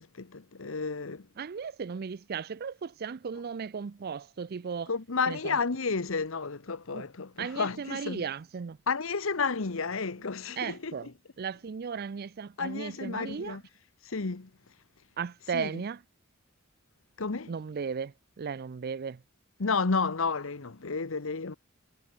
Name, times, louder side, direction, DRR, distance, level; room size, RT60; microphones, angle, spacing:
voice 1, 0.0-1.3 4.9-8.2 8.9-11.1 12.6-13.6 14.0-14.5 15.5-15.8 17.2-17.5 19.6-21.6, left 4 dB, 65° left, 1.0 m, -31 dB
voice 2, 1.4-4.9 5.3-5.6 6.9-7.1 7.4-8.8 10.6-11.1 11.4-13.6 15.2-16.0 17.5-19.2, right 6 dB, 45° right, 0.4 m, -36 dB
head